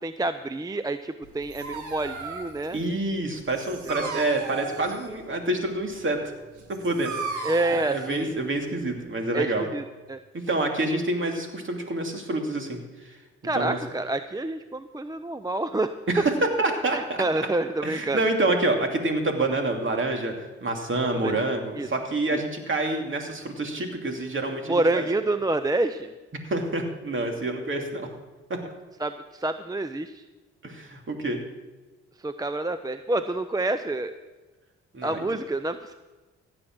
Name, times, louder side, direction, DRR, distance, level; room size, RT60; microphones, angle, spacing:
voice 1, 0.0-2.8 3.9-4.1 7.4-8.3 9.3-10.2 13.4-15.9 16.9-18.2 21.1-21.3 21.8-21.9 22.3-22.4 24.7-26.1 29.0-30.2 32.2-34.1 35.0-35.9, right 2 dB, 15° right, 11 dB, 0.6 m, -28 dB
Dog, 1.2-9.1, right 5 dB, 80° right, 1.8 m, -37 dB
voice 2, 2.7-6.2 6.7-9.7 10.5-12.8 13.0-13.2 13.5-13.8 16.1-16.3 16.6-17.2 17.8-20.3 20.6-25.1 26.5-28.1 28.5-28.6 30.6-31.4 34.9-35.2, right 2 dB, 40° right, 3 dB, 2.8 m, -27 dB
16.0 x 7.8 x 6.1 m, 1.2 s
supercardioid pair, 60°, 29 cm